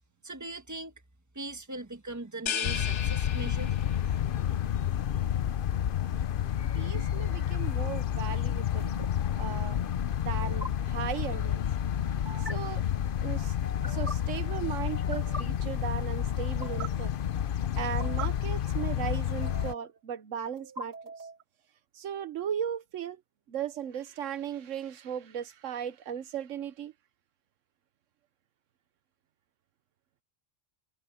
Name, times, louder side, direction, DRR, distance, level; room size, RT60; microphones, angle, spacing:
voice 1, 0.2-0.9 1.3-3.8, right 2 dB, 15° right, 1.3 m, -40 dB
sound 1, 2.5-4.2, left 8 dB, 70° left, 1.2 m, -35 dB
sound 2, 2.6-19.7, left 10 dB, 55° left, 0.7 m, -30 dB
sound 3, 6.7-7.0 8.8-9.1 10.4-10.7 12.3-12.5 13.6-14.1 14.9-15.4 16.4-16.9 17.8-18.3 19.3-19.9 20.6-21.4, right 2 dB, 40° right, 3.4 m, -41 dB
voice 2, 6.7-8.9 9.4-9.8 10.2-11.6 12.4-12.8 13.2-13.5 13.8-17.1 17.7-21.0 21.9-23.2 23.5-26.9, right 9 dB, 80° right, 1.2 m, -36 dB
omnidirectional pair, 1.3 m